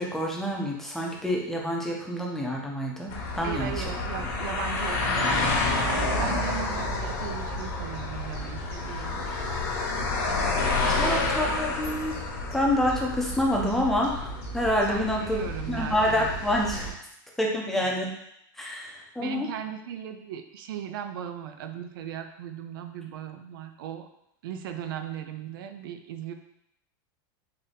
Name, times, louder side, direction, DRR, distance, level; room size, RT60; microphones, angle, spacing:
voice 1, 0.0-3.8 10.9-12.1 12.5-15.4 15.7-16.9 17.4-18.1 18.6-19.5, left 1 dB, 5° left, -2 dB, 0.6 m, -27 dB
sound 1, 3.1-16.9, left 2 dB, 50° left, 1.0 m, -29 dB
voice 2, 3.4-9.3 10.9-11.2 14.9-16.3 18.6-18.8 19.2-24.1 24.4-26.3, right 9 dB, 75° right, 7 dB, 0.4 m, -37 dB
3.9 x 2.7 x 3.4 m, 0.77 s
supercardioid pair, 140°, 12 cm